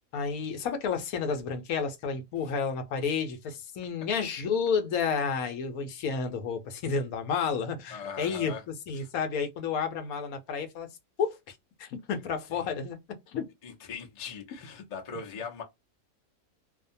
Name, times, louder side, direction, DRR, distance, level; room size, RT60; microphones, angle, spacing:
voice 1, 0.1-10.9 11.2-11.5 11.8-13.0 13.3-13.4, left 6 dB, 80° left, 1.1 m, -31 dB
voice 2, 7.9-8.6 8.9-9.1 12.5-12.6 13.6-15.6, left 6 dB, 35° left, 0.6 m, -40 dB
2.7 x 2.2 x 2.5 m
omnidirectional pair, 1.5 m